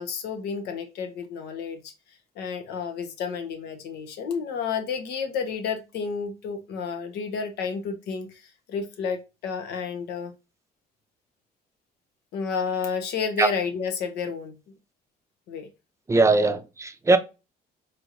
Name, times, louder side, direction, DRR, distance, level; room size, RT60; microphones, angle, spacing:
voice 1, 0.0-1.9 2.4-10.3 12.3-14.5 15.5-15.7, left 5 dB, 75° left, 1.1 m, -31 dB
voice 2, 16.1-17.2, right 3 dB, 15° right, 0.6 m, -20 dB
4.5 x 3.0 x 2.6 m
cardioid pair, 110°, 17 cm